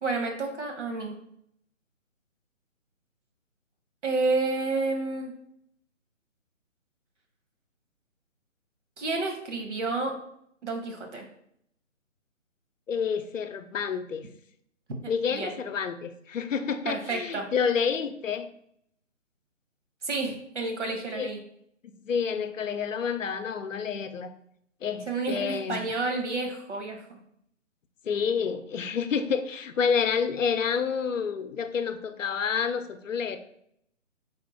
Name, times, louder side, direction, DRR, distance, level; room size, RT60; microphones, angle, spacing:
voice 1, 0.0-1.1 4.0-5.3 9.0-10.1 10.6-11.2 15.3-15.5 16.9-17.5 20.0-21.4 25.1-27.2, right 3 dB, 65° right, 3 dB, 1.1 m, -30 dB
voice 2, 12.9-14.3 15.1-18.5 21.1-21.3 21.8-24.3 24.8-25.9 28.0-33.4, left 6 dB, 80° left, 9 dB, 0.5 m, -29 dB
3.5 x 2.2 x 4.2 m, 0.70 s
figure-of-eight pair, 150°, 38 cm